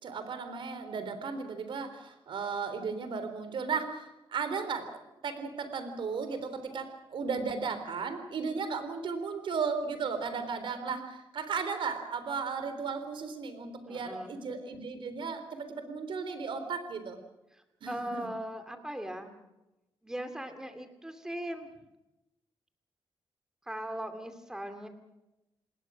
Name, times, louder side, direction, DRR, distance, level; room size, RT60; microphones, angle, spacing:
voice 1, 0.0-4.9 5.2-17.2 17.8-18.3, right 5 dB, 65° right, 9 dB, 3.6 m, -35 dB
voice 2, 13.9-14.5 17.9-19.3 20.0-21.7 23.6-24.9, right 1 dB, 5° right, 7 dB, 2.6 m, -39 dB
27.0 x 20.5 x 6.3 m, 0.95 s
wide cardioid pair, 170°, 9 cm